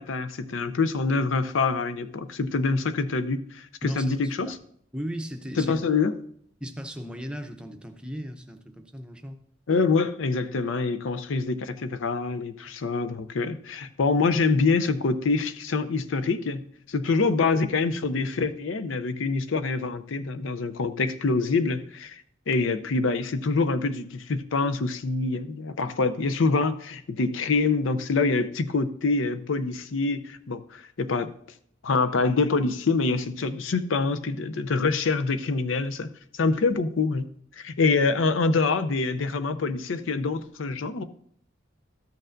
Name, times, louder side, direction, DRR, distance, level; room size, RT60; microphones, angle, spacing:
voice 1, 0.0-4.5 5.6-6.1 9.7-16.6 16.9-31.3 31.8-37.2 37.6-41.0, left 4 dB, 90° left, 12 dB, 0.6 m, -25 dB
voice 2, 3.8-4.6 4.9-5.8 6.6-9.4, equal, 5° right, 5 dB, 0.6 m, -37 dB
13.0 x 6.6 x 2.6 m, 0.64 s
head